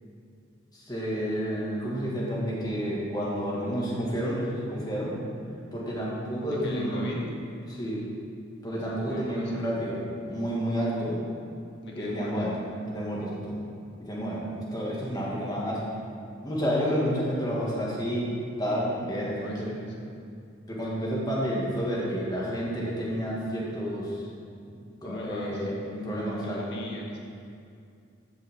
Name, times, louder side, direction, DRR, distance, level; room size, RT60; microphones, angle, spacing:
voice 1, 0.7-5.2 5.7-7.1 7.6-8.0 8.6-10.0 10.3-11.2 11.9-12.6 12.9-13.5 14.0-15.8 16.4-18.3 18.6-19.7 20.7-24.2 25.0-25.8 26.0-26.6, equal, 20° left, -6 dB, 1.9 m, -30 dB
voice 2, 6.5-7.2 8.9-9.7 11.8-12.5 19.2-19.9 24.6-24.8 25.0-25.6 25.9-27.2, left 1 dB, 60° left, -2 dB, 1.6 m, -38 dB
14.0 x 5.6 x 3.7 m, 2.4 s
head